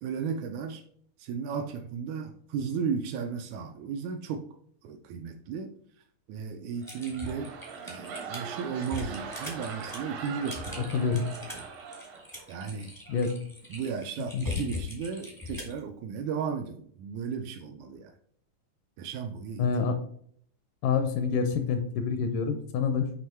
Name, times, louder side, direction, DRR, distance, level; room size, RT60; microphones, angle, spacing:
voice 1, 0.0-0.8 1.2-4.5 4.8-5.8 6.3-7.6 7.8-11.6 12.5-13.0 13.7-18.1 19.0-19.7, right 6 dB, 90° right, 5 dB, 1.6 m, -35 dB
sound 1, 6.7-12.7 13.1-13.4, right 6 dB, 75° right, 1.5 m, -41 dB
Typing, 6.8-15.8, left 3 dB, 30° left, 0.3 m, -40 dB
voice 2, 14.3-14.6 19.6-20.0 20.8-23.2, left 5 dB, 80° left, 7 dB, 2.0 m, -27 dB
7.4 x 3.1 x 4.3 m, 0.62 s
omnidirectional pair, 4.0 m